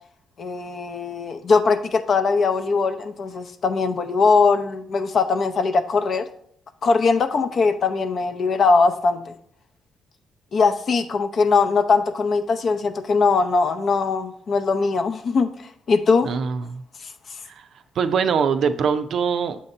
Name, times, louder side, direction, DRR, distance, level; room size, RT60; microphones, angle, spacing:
voice 1, 0.4-6.3 6.8-9.3 10.5-16.3 17.0-17.1, left 4 dB, 55° left, 0.6 m, -21 dB
voice 2, 16.2-16.8 17.4-17.7 18.0-19.6, right 6 dB, 65° right, 0.5 m, -23 dB
7.2 x 2.8 x 5.3 m
cardioid pair, 90°, 0 cm